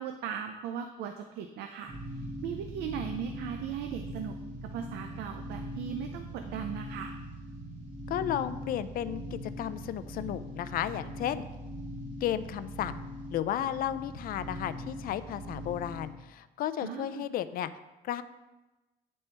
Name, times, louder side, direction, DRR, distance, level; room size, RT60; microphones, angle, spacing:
voice 1, 0.0-1.9 2.4-4.4 4.6-7.1 16.8-17.3, right 8 dB, 80° right, 6 dB, 0.5 m, -38 dB
sound 1, 1.9-16.0, equal, 50° right, 2.4 m, -41 dB
voice 2, 8.1-11.4 12.2-12.9 13.3-17.7 18.0-18.2, left 11 dB, 60° left, 13 dB, 0.4 m, -33 dB
9.3 x 4.3 x 3.3 m, 1.1 s
cardioid pair, 110°, 17 cm